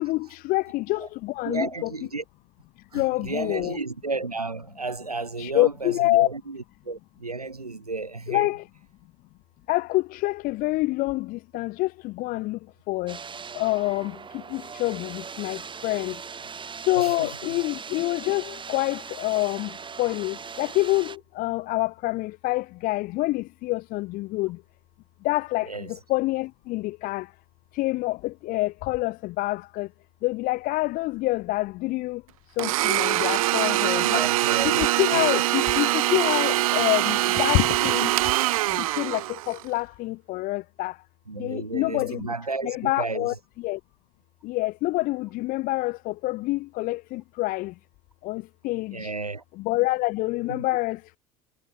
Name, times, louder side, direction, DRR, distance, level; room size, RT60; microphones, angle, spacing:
voice 1, 0.0-1.9 2.9-3.8 5.4-6.3 8.3-8.6 9.7-12.6 12.9-13.2 13.5-16.2 16.8-24.6 25.2-27.3 27.7-29.9 30.2-32.2 32.6-34.3 34.6-38.1 38.7-41.0 41.4-42.3 42.6-43.8 44.4-47.7 48.2-49.1 49.6-51.2, left 20 dB, 50° left, 0.7 m, -27 dB
voice 2, 1.4-2.2 2.9-8.5 17.0-17.6 25.7-25.9 34.0-34.9 35.1-35.2 41.3-43.3 48.9-49.4 50.5-50.6, right 3 dB, 90° right, 2.4 m, -33 dB
sound 1, 13.1-21.2, right 6 dB, 25° right, 2.9 m, -40 dB
Domestic sounds home sounds, 32.6-39.6, right 17 dB, 70° right, 0.6 m, -23 dB
figure-of-eight pair, 65°, 19 cm